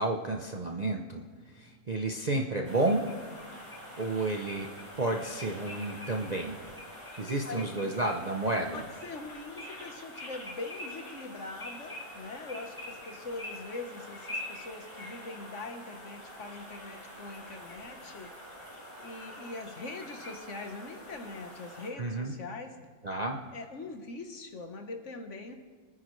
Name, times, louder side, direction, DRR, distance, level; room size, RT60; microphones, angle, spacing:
voice 1, 0.0-3.1 4.0-6.6 7.2-8.8 22.0-22.4 23.0-23.4, right 2 dB, 35° right, 1 dB, 0.7 m, -31 dB
sound 1, 2.6-21.9, left 1 dB, 20° left, 3.2 m, -45 dB
voice 2, 8.5-18.3 19.0-22.7 23.5-25.6, left 3 dB, 55° left, 5 dB, 1.4 m, -42 dB
25.5 x 9.7 x 3.2 m, 1.5 s
omnidirectional pair, 1.6 m